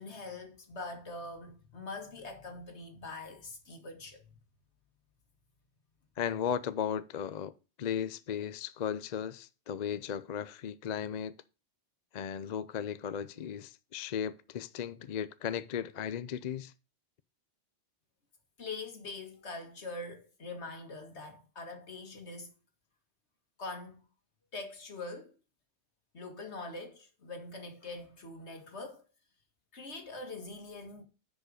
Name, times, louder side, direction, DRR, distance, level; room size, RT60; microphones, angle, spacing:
voice 1, 0.0-4.3 18.6-22.5 23.6-24.0 24.5-25.3 26.1-29.0 29.7-31.0, left 3 dB, 75° left, 2.2 m, -43 dB
voice 2, 6.2-7.5 7.8-11.3 12.1-16.7, left 8 dB, 50° left, 0.6 m, -36 dB
10.0 x 5.2 x 5.0 m
omnidirectional pair, 1.1 m